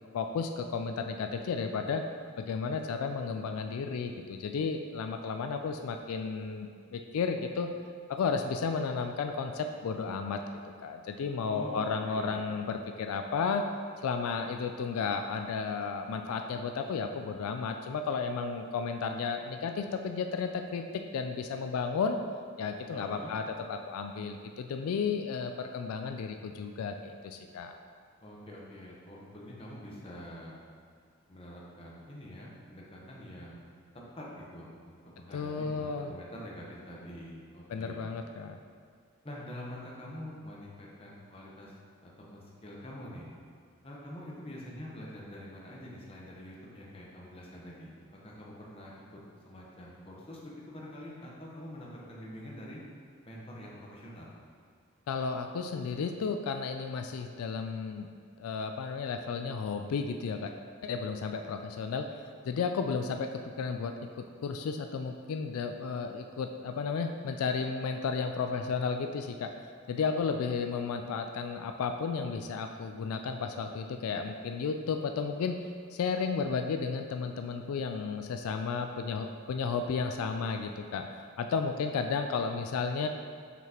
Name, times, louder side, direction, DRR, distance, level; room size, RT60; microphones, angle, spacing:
voice 1, 0.1-2.1 2.4-7.7 8.1-10.4 10.8-13.6 14.0-22.2 22.6-27.8 35.3-36.1 37.7-38.6 55.1-58.1 58.4-60.5 60.8-62.1 62.4-63.3 63.6-69.5 69.9-75.5 75.9-83.1, left 5 dB, 85° left, 5 dB, 0.3 m, -33 dB
voice 2, 11.4-12.5 22.9-23.3 28.2-30.6 31.3-33.8 34.2-38.1 39.2-41.7 42.0-43.3 43.8-47.9 48.2-52.8 53.2-54.3, equal, 25° left, -4 dB, 0.9 m, -45 dB
5.8 x 5.7 x 2.9 m, 2.1 s
head